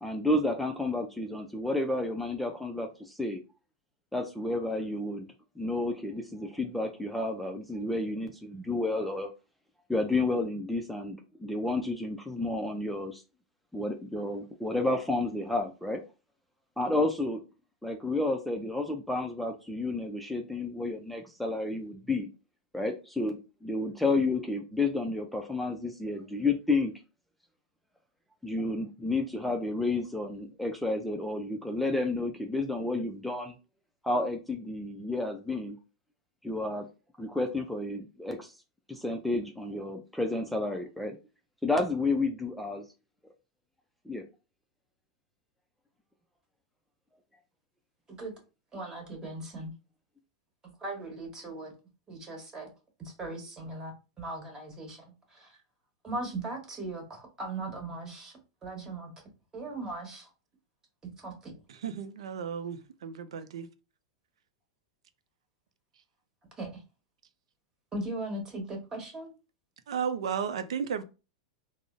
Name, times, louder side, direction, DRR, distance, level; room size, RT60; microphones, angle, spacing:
voice 1, 0.0-3.4 4.1-5.3 5.6-9.3 9.9-13.2 13.7-16.0 16.8-17.4 17.8-22.3 22.7-26.9 28.4-33.5 34.0-35.8 36.4-36.9 37.2-38.5 38.9-41.2 41.6-42.8 44.1-44.2, left 2 dB, ahead, 0.4 m, -31 dB
voice 2, 48.7-49.7 50.8-51.7 52.1-52.7 53.0-53.9 54.2-55.0 55.3-55.6 56.0-58.3 58.6-59.1 59.5-60.3 61.0-61.5 66.6-66.8 67.9-69.3, right 2 dB, 20° right, 1.3 m, -38 dB
voice 3, 61.7-63.7 69.9-71.0, right 7 dB, 75° right, 0.4 m, -34 dB
3.6 x 2.0 x 2.5 m
hypercardioid pair, 105°, 3 cm